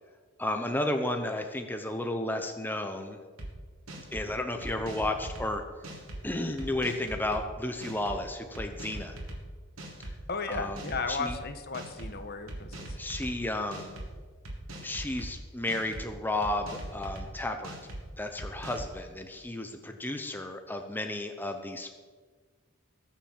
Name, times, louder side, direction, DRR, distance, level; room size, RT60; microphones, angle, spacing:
voice 1, 0.4-3.2 4.1-5.6 6.2-9.2 10.5-10.8 11.1-11.4 13.0-13.9 14.8-17.8 18.2-21.9, left 1 dB, 10° left, 5 dB, 0.9 m, -33 dB
sound 1, 3.4-3.5 3.9-4.3 4.6-5.5 5.8-6.2 6.6-7.4 7.8-8.2 8.5-9.4 9.8-10.1 10.5-11.4 11.7-12.1 12.5-13.3 13.7-14.1 14.4-15.3 15.7-16.0 16.4-17.3 17.6-18.0 18.4-18.9, right 1 dB, 75° right, 3.5 m, -40 dB
voice 2, 10.3-13.0, left 4 dB, 50° left, 8 dB, 1.4 m, -35 dB
20.0 x 7.4 x 7.4 m, 1.5 s
head